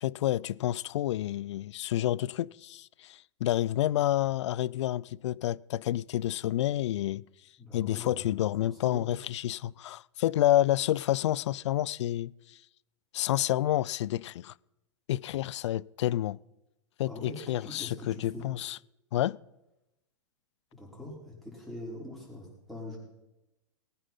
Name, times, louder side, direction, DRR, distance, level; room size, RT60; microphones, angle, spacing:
voice 1, 0.0-7.2 7.7-12.6 13.1-14.5 15.1-16.4 17.0-18.8 19.1-19.4, left 13 dB, 70° left, 0.4 m, -29 dB
voice 2, 7.6-9.1 17.0-18.5 20.7-23.0, left 2 dB, ahead, 4.9 m, -43 dB
19.5 x 9.0 x 5.6 m
hypercardioid pair, 115°, 15 cm